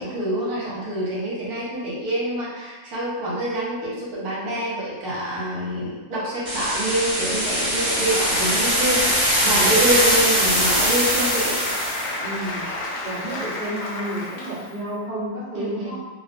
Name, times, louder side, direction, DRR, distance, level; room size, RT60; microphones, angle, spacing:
voice 1, 0.0-11.6 15.5-16.0, right 1 dB, 70° right, -7 dB, 1.3 m, -26 dB
sound 1, 6.5-12.1, equal, 15° right, 1.0 m, -22 dB
Applause, 7.4-14.8, left 2 dB, 70° left, 1.0 m, -31 dB
voice 2, 9.4-9.8 12.2-12.7 13.0-16.0, right 1 dB, 35° left, -14 dB, 0.7 m, -31 dB
2.8 x 2.1 x 2.5 m, 1.3 s
omnidirectional pair, 1.7 m